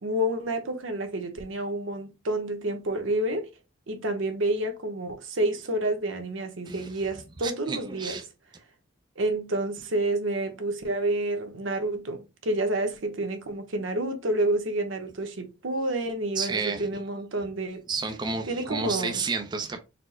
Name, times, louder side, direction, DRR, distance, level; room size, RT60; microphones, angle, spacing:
voice 1, 0.0-3.5 3.9-8.2 9.2-17.8 18.5-19.2, right 1 dB, 85° right, 0.9 m, -29 dB
voice 2, 6.6-7.0 7.4-8.2 16.4-17.0 17.9-19.8, right 4 dB, 25° right, 0.4 m, -31 dB
4.2 x 2.1 x 4.3 m
head